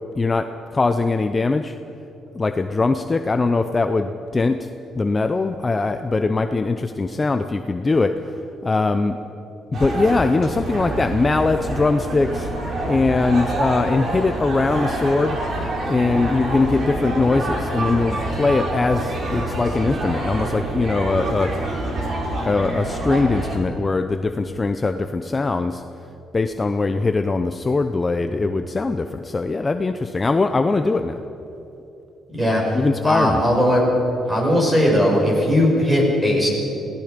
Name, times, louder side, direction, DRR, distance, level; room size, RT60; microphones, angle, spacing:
voice 1, 0.2-1.8 2.3-4.7 5.0-8.2 8.6-9.2 9.7-12.5 12.9-15.4 15.9-21.5 22.5-25.8 26.3-31.2 32.7-33.4, left 3 dB, 20° left, 7 dB, 0.6 m, -21 dB
sound 1, 9.7-23.6, right 1 dB, 45° right, 4.3 m, -27 dB
voice 2, 32.3-33.9 34.3-36.5, equal, 15° right, -2 dB, 6.3 m, -18 dB
28.0 x 18.0 x 5.2 m, 3.0 s
cardioid pair, 150°, 0 cm